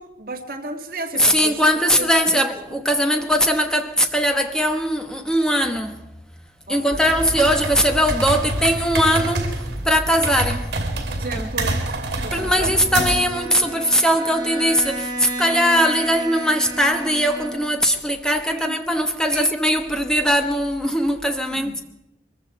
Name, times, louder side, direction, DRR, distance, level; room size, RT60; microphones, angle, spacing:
voice 1, 0.0-1.6 2.0-2.1 2.7-2.8 6.7-7.1 11.1-11.8 12.2-12.7 18.5-18.8 19.3-19.5 21.5-21.8, right 2 dB, 55° right, 1.9 m, -33 dB
voice 2, 1.1-6.0 6.7-10.8 11.3-11.5 12.3-21.8, equal, 5° left, 1.1 m, -20 dB
sound 1, 7.0-13.4, right 2 dB, 70° right, 2.6 m, -27 dB
Bowed string instrument, 12.6-17.9, right 1 dB, 25° right, 3.3 m, -32 dB
23.0 x 14.5 x 4.4 m
head